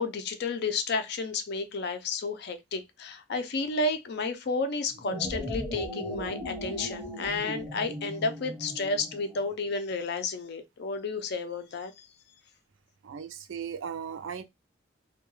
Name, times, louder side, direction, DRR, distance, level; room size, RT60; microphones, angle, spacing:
voice 1, 0.0-11.9, left 3 dB, 55° left, 0.4 m, -31 dB
sound 1, 4.9-9.5, equal, 5° right, 0.6 m, -38 dB
voice 2, 13.0-14.4, right 7 dB, 80° right, 0.4 m, -37 dB
2.2 x 2.2 x 3.0 m
head